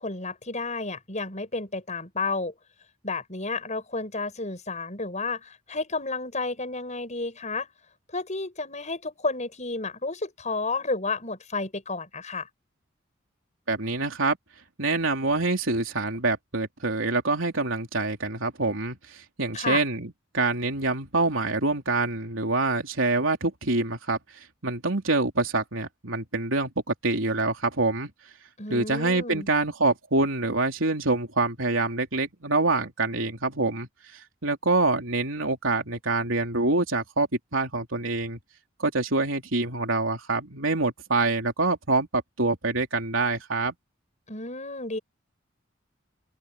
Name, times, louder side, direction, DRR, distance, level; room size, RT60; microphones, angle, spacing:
voice 1, 0.0-2.5 3.0-7.7 8.1-12.5 19.5-19.8 28.6-29.5 44.3-45.0, left 3 dB, 35° left, 7.2 m, -31 dB
voice 2, 13.7-14.4 14.8-24.2 24.6-28.1 28.7-33.9 34.4-38.4 38.8-43.7, right 3 dB, 85° right, 3.4 m, -26 dB
open air
head